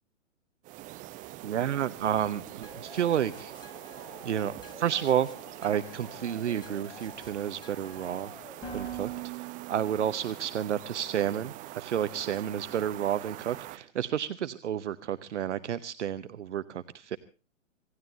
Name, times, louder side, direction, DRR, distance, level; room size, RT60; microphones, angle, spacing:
sound 1, 0.6-13.8, right 16 dB, 20° right, 0.8 m, -44 dB
voice 1, 1.4-3.5 4.2-5.3 5.6-8.3 8.7-17.2, right 10 dB, 60° right, 13 dB, 0.9 m, -31 dB
sound 2, 2.6-10.4, right 4 dB, 10° left, 3.0 m, -45 dB
26.0 x 17.5 x 2.7 m, 0.36 s
figure-of-eight pair, 110°, 39 cm